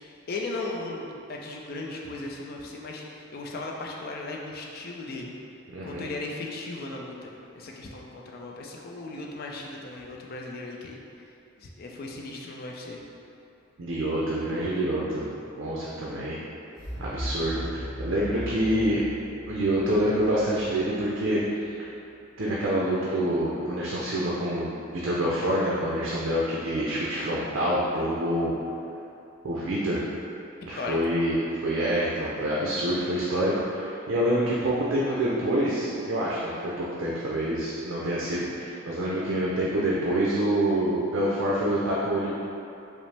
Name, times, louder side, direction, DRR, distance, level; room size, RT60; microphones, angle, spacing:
voice 1, 0.3-5.3 5.8-11.0 11.6-13.0 30.8-31.0, left 2 dB, 50° left, -1 dB, 0.4 m, -37 dB
voice 2, 5.7-6.1 13.8-15.3 15.6-16.4 17.0-19.0 19.5-21.9 22.4-24.7 25.0-28.5 29.4-30.0 30.7-31.4 31.6-42.3, right 1 dB, 70° right, -6 dB, 0.5 m, -26 dB
sound 1, 16.7-21.6, equal, 20° right, 1.1 m, -38 dB
5.1 x 2.0 x 3.3 m, 2.7 s
head